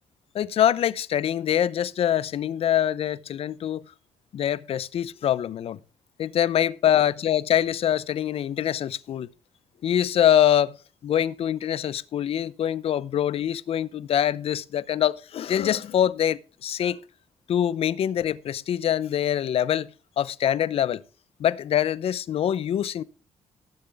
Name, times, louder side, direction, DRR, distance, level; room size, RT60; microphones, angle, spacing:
voice 1, 0.3-3.8 4.3-5.8 6.2-9.3 9.8-10.8 11.0-17.0 17.5-19.9 20.2-21.0 21.4-23.0, left 10 dB, 65° left, 0.7 m, -24 dB
18.5 x 7.7 x 3.5 m
cardioid pair, 85°, 11 cm